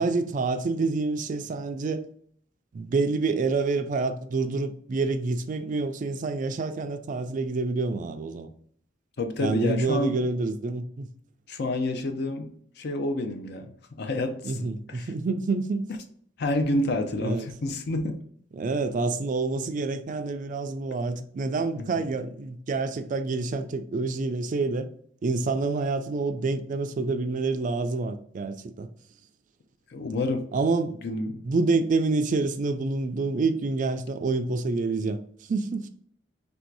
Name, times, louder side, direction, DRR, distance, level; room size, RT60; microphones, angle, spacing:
voice 1, 0.0-2.0 2.7-8.5 9.4-11.1 14.4-15.9 17.2-17.5 18.5-24.9 25.2-28.9 30.5-31.0 31.5-35.2 35.5-35.9, right 3 dB, 45° right, 0.3 m, -27 dB
voice 2, 9.2-10.3 11.5-13.7 14.0-15.1 16.4-18.2 21.8-21.9 29.9-30.5 31.0-31.4, left 2 dB, 60° left, 0.6 m, -29 dB
3.3 x 2.6 x 4.6 m
head